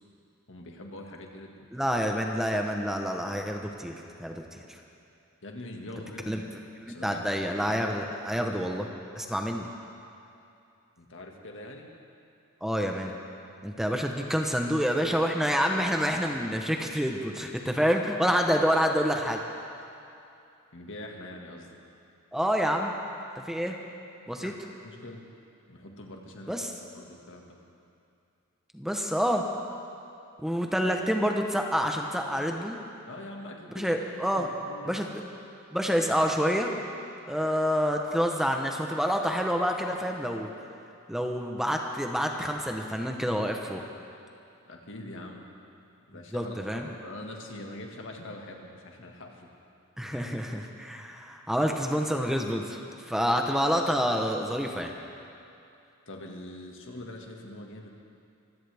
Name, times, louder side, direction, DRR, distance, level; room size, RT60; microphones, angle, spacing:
voice 1, 0.5-1.7 5.4-6.5 6.9-7.3 8.3-8.5 11.0-11.9 20.7-21.8 24.4-24.6 24.8-25.2 25.7-26.7 26.9-27.6 33.1-33.9 34.2-35.0 44.7-45.5 46.1-49.5 56.1-57.9, left 1 dB, 60° left, 1 dB, 1.8 m, -43 dB
voice 2, 1.7-4.4 6.3-6.4 6.8-8.9 9.1-9.7 12.6-13.2 13.6-19.4 22.3-22.9 23.5-23.8 24.3-24.5 26.5-26.7 28.7-29.4 30.4-32.8 33.7-34.5 34.8-35.1 35.7-36.7 37.3-40.5 41.1-43.8 46.3-46.9 50.0-54.9, equal, ahead, 2 dB, 0.9 m, -28 dB
25.0 x 16.0 x 3.5 m, 2.6 s
head